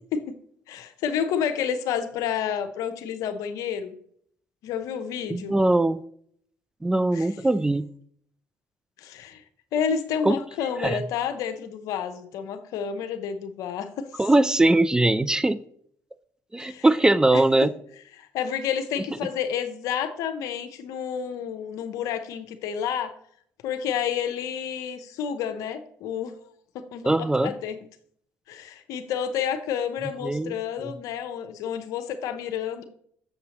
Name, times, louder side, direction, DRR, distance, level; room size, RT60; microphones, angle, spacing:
voice 1, 0.7-4.0 4.6-5.6 7.1-7.3 9.0-9.4 9.7-14.1 16.6-16.8 17.3-17.4 18.2-23.1 23.6-26.3 26.7-27.1 27.4-27.8 28.5-32.8, left 8 dB, 80° left, 9 dB, 0.7 m, -30 dB
voice 2, 5.3-6.0 6.8-7.9 10.2-10.4 10.8-11.0 14.2-15.6 16.5-17.7 27.1-27.5 30.2-30.5 30.8-30.9, right 2 dB, 10° right, 15 dB, 0.3 m, -21 dB
6.8 x 6.4 x 2.9 m, 0.63 s
supercardioid pair, 70°, 6 cm